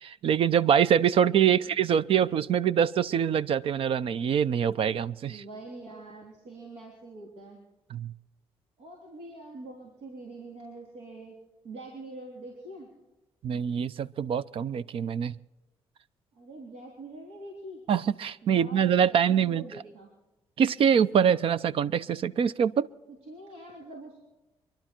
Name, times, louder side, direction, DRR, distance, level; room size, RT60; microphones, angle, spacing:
voice 1, 0.0-5.4 7.9-8.1 13.4-15.3 17.9-19.6 20.6-22.9, right 8 dB, 65° right, 18 dB, 0.6 m, -24 dB
voice 2, 5.3-7.6 8.8-11.3 11.6-12.9 16.3-17.8 18.4-20.1 23.3-24.2, right 2 dB, 90° right, -1 dB, 3.4 m, -44 dB
25.0 x 11.5 x 4.5 m, 1.0 s
cardioid pair, 80°, 10 cm